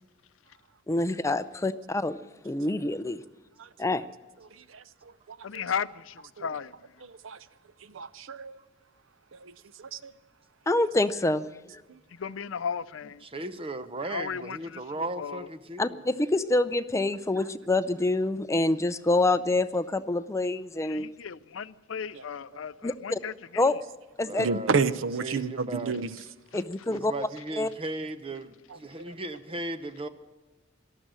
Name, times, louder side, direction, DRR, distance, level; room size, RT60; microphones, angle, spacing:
voice 1, 0.9-2.2 2.4-3.2 3.8-4.0 10.7-11.5 11.7-11.8 15.8-21.1 22.8-23.2 23.6-23.8 24.2-24.5 26.5-27.1 27.6-27.7, left 2 dB, 15° left, 0.5 m, -26 dB
voice 2, 5.4-6.7 12.2-13.2 14.1-14.8 15.2-15.5 20.8-23.6, left 7 dB, 85° left, 0.5 m, -35 dB
voice 3, 7.1-7.4 7.9-8.6 9.4-9.5 9.8-10.1 22.1-22.2 24.4-26.1 29.1-29.2, right 5 dB, 90° right, 0.6 m, -30 dB
voice 4, 13.2-16.0 24.2-26.2 26.9-30.1, right 2 dB, 30° right, 0.8 m, -37 dB
18.5 x 12.5 x 6.2 m
head